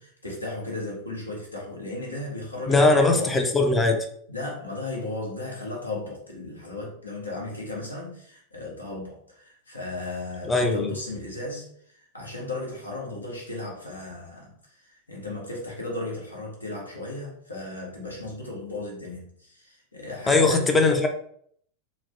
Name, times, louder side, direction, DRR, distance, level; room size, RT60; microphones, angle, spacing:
voice 1, 0.0-3.4 4.3-20.7, left 2 dB, 80° left, -3 dB, 0.8 m, -35 dB
voice 2, 2.7-4.1 10.5-10.9 20.3-21.1, left 3 dB, 15° left, 4 dB, 0.4 m, -20 dB
3.1 x 2.0 x 2.6 m, 0.64 s
figure-of-eight pair, 90°, 0 cm